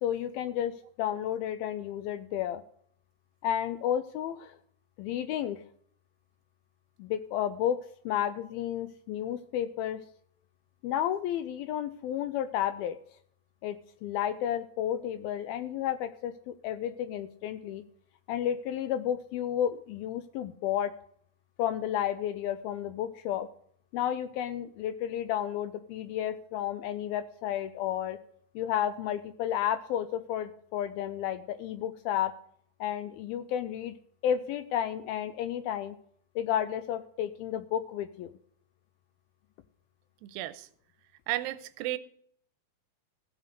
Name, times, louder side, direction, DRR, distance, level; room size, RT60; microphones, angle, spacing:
voice 1, 0.0-2.6 3.4-4.6 5.0-5.6 7.0-10.0 10.8-13.0 13.6-17.8 18.3-20.9 21.6-23.5 23.9-28.2 28.6-32.3 32.8-33.9 34.2-36.0 36.4-38.3, left 10 dB, 85° left, 2.2 m, -32 dB
voice 2, 40.2-40.7 41.3-42.0, right 15 dB, 85° right, 2.7 m, -33 dB
16.5 x 5.8 x 6.5 m
omnidirectional pair, 4.9 m